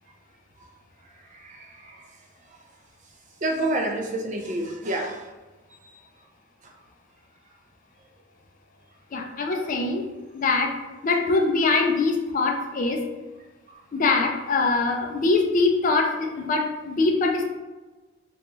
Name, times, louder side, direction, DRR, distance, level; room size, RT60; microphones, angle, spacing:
voice 1, 1.4-2.0 3.4-5.2, right 1 dB, 35° right, 2 dB, 0.4 m, -28 dB
voice 2, 9.1-10.0 10.3-10.7 11.0-13.0 13.9-17.5, left 3 dB, 40° left, 2 dB, 0.3 m, -23 dB
3.5 x 2.3 x 3.0 m, 1.2 s
head